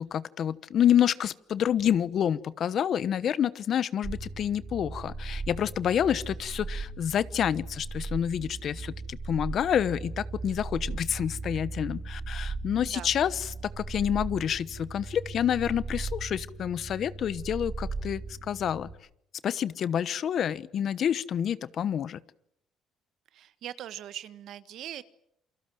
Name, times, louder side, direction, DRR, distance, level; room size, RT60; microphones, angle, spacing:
voice 1, 0.0-18.2 18.5-18.9 19.4-22.2, left 9 dB, 50° left, 17 dB, 1.0 m, -28 dB
sound 1, 4.0-18.9, right 3 dB, 25° right, 5.7 m, -38 dB
voice 2, 12.8-13.1 23.3-25.0, right 11 dB, 65° right, 14 dB, 1.5 m, -41 dB
28.5 x 24.0 x 7.8 m, 0.75 s
cardioid pair, 110°, 0 cm